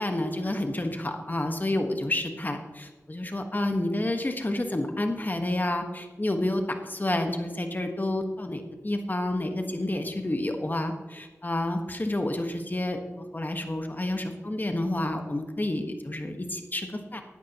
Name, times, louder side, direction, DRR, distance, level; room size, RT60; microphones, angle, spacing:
voice 1, 0.0-17.2, left 1 dB, 35° left, 5 dB, 1.4 m, -29 dB
13.5 x 12.0 x 3.0 m, 1.2 s
cardioid pair, 45°, 5 cm